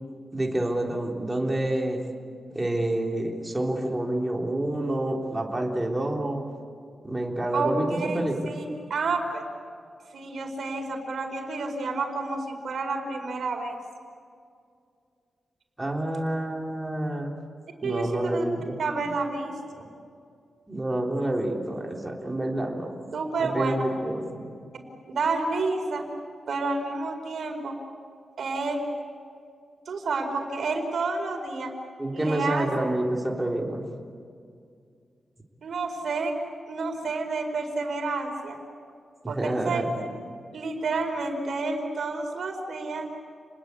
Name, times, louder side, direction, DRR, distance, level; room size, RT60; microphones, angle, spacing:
voice 1, 0.3-2.0 2.5-6.5 7.0-8.6 15.8-17.3 17.8-18.8 19.0-19.1 20.7-22.9 23.4-24.5 32.0-33.8 39.2-40.0, right 1 dB, 10° right, 0 dB, 3.6 m, -28 dB
voice 2, 7.5-8.6 8.9-9.4 10.1-13.8 17.8-18.4 18.8-19.9 23.1-23.8 25.1-26.0 26.5-27.8 28.4-28.8 29.9-31.7 32.1-32.7 35.6-36.3 36.7-38.6 39.3-39.8 40.5-43.1, right 3 dB, 65° right, 4 dB, 4.9 m, -29 dB
30.0 x 20.5 x 8.4 m, 2.3 s
wide cardioid pair, 145°, 0 cm